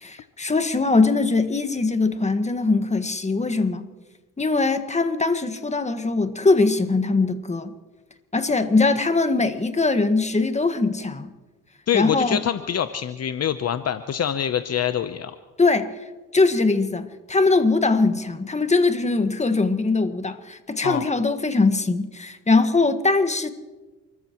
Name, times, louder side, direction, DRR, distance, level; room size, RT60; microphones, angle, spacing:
voice 1, 0.0-3.9 4.4-7.7 8.3-11.3 11.9-12.4 15.6-15.9 16.3-23.5, left 3 dB, 20° left, 9 dB, 1.6 m, -21 dB
voice 2, 11.9-15.3 20.8-21.1, left 9 dB, 50° left, 10 dB, 0.9 m, -25 dB
29.0 x 14.5 x 3.1 m, 1.2 s
supercardioid pair, 65°, 32 cm